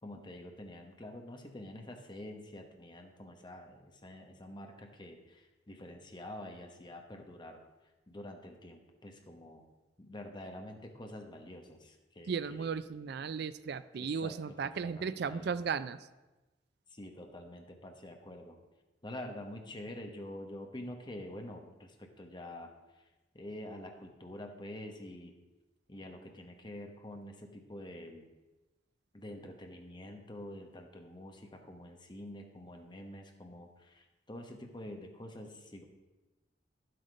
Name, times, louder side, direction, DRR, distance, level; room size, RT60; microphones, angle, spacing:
voice 1, 0.0-7.6 8.1-9.7 10.0-12.8 13.9-14.3 14.7-15.5 16.9-18.6 19.0-22.7 23.3-25.3 25.9-28.3 29.1-35.8, left 1 dB, 25° left, 4 dB, 1.2 m, -47 dB
voice 2, 12.3-16.0, right 6 dB, 60° right, 14 dB, 0.4 m, -35 dB
10.5 x 7.9 x 5.1 m, 1.1 s
head